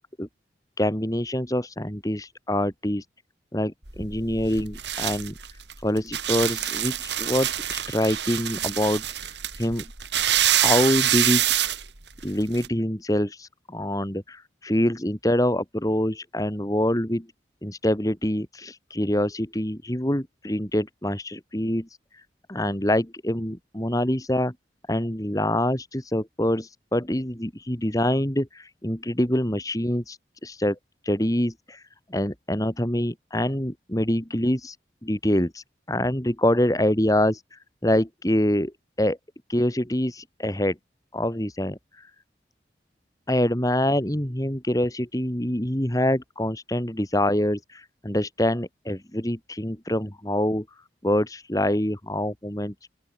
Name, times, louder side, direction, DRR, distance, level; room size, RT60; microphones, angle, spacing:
voice 1, 0.8-3.0 3.5-5.3 5.8-9.9 10.5-11.4 12.2-17.3 17.6-21.9 22.5-24.5 24.9-30.8 31.0-31.8 32.1-34.8 35.0-38.7 39.0-39.2 39.5-40.8 41.1-42.1 43.3-50.7 51.0-52.7, left 1 dB, 20° left, 2.1 m, -25 dB
sound 1, 3.9-12.7, right 11 dB, 70° right, 5.1 m, -26 dB
open air
head